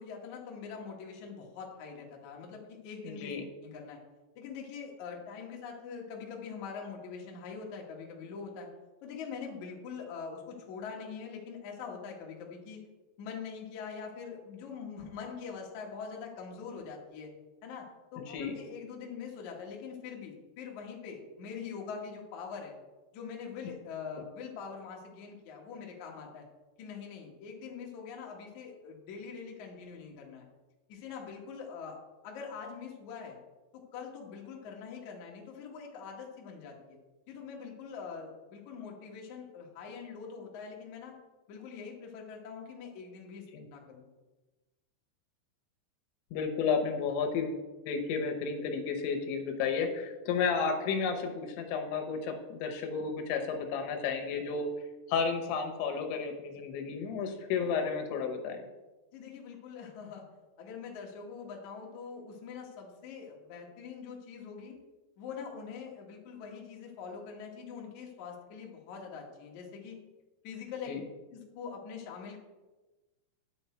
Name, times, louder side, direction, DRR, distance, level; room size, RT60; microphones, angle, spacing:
voice 1, 0.0-3.3 3.6-4.0 4.4-8.7 9.0-12.8 13.2-17.3 17.6-17.8 18.1-22.7 23.1-26.4 26.8-30.5 30.9-32.0 32.2-33.4 33.9-37.0 37.3-41.1 41.5-44.1 59.1-60.2 60.6-64.7 65.2-70.0 70.4-70.9 71.3-72.4, left 6 dB, 60° left, -1 dB, 2.2 m, -43 dB
voice 2, 3.0-3.5 18.3-18.6 43.5-43.7 46.3-54.7 55.1-58.6 70.9-71.0, left 5 dB, 85° left, 5 dB, 3.4 m, -32 dB
10.0 x 7.1 x 4.4 m, 1.2 s
omnidirectional pair, 5.1 m